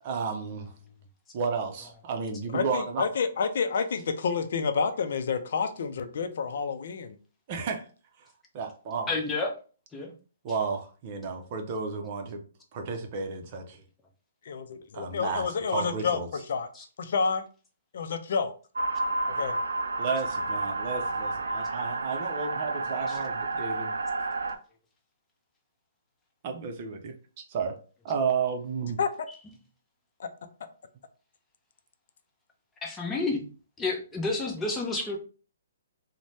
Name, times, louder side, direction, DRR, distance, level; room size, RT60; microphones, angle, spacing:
voice 1, 0.0-0.7 1.3-3.0 7.5-7.9 8.2-8.3 8.5-9.1 10.4-12.4 12.7-13.8 14.9-16.3 20.0-23.9 26.4-27.8 28.0-29.0, right 5 dB, 40° right, 0.6 m, -32 dB
voice 2, 2.5-7.1 14.5-16.7 17.0-17.4 17.9-18.5 19.4-19.5 29.0-29.1, left 5 dB, 65° left, 0.4 m, -29 dB
voice 3, 9.1-9.5 9.9-10.1 16.7-16.8 23.1-23.2 32.8-33.4 33.8-35.2, left 3 dB, 15° left, 0.7 m, -30 dB
sound 1, 18.8-24.6, right 3 dB, 90° right, 0.3 m, -30 dB
2.6 x 2.1 x 3.2 m
hypercardioid pair, 145°, 0 cm